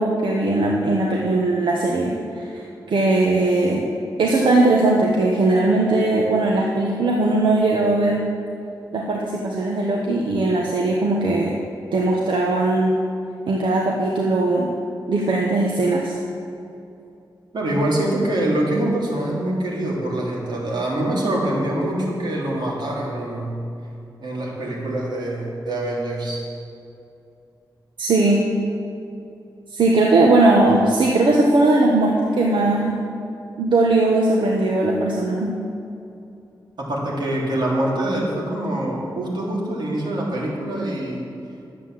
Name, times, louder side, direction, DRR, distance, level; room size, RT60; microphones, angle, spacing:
voice 1, 0.0-3.8 4.2-8.3 8.9-11.5 11.9-13.0 13.5-14.7 15.1-16.2 28.0-28.5 29.7-33.0 33.6-35.6, right 2 dB, 85° right, -2 dB, 1.2 m, -19 dB
voice 2, 17.5-23.6 24.2-26.4 36.8-41.3, right 1 dB, 65° right, -4 dB, 3.2 m, -24 dB
11.5 x 8.3 x 7.5 m, 2.7 s
wide cardioid pair, 125°, 8 cm